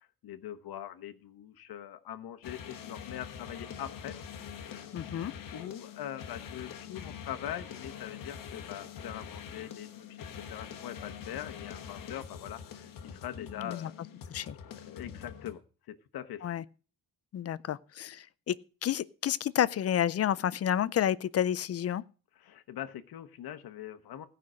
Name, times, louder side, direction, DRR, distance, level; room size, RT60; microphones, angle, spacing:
voice 1, 0.0-4.2 4.6-4.9 5.5-13.9 14.7-15.6 15.9-16.5 22.4-24.3, left 11 dB, 90° left, 1.1 m, -42 dB
sound 1, 2.4-15.5, left 8 dB, 65° left, 1.4 m, -44 dB
voice 2, 4.9-5.3 13.5-13.9 14.3-14.6 16.4-16.6 17.3-18.6 18.8-22.0, left 10 dB, 45° left, 0.5 m, -30 dB
16.5 x 5.8 x 6.3 m
wide cardioid pair, 175°, 36 cm